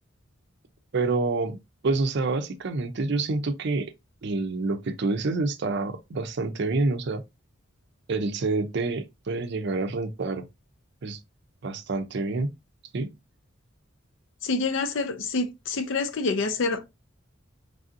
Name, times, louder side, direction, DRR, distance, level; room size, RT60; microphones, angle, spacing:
voice 1, 0.9-1.6 1.8-3.9 4.2-7.2 8.1-10.4 11.0-11.2 11.6-12.5 12.9-13.1, right 3 dB, 55° right, 0.5 m, -27 dB
voice 2, 14.4-16.9, left 3 dB, 65° left, 0.5 m, -27 dB
3.3 x 2.6 x 2.5 m
head